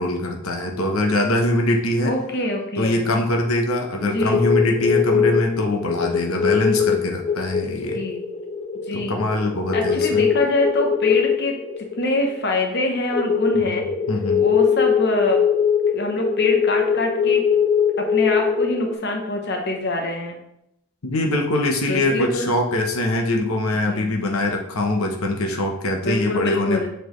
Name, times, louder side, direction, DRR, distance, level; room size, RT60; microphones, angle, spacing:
voice 1, 0.0-2.1 2.8-8.0 8.9-10.3 13.7-13.8 14.1-14.5 21.0-26.9, left 1 dB, 80° left, 2 dB, 0.9 m, -23 dB
voice 2, 2.0-3.0 4.0-4.4 7.6-8.2 8.9-9.2 9.7-11.6 12.0-13.8 14.4-15.4 15.9-17.4 18.0-20.4 21.9-22.5 23.8-24.1 26.0-26.9, left 1 dB, 50° left, 2 dB, 0.8 m, -24 dB
sound 1, 4.2-12.5 13.1-18.9, left 7 dB, 30° left, 0.4 m, -22 dB
7.0 x 4.3 x 3.1 m, 0.79 s
head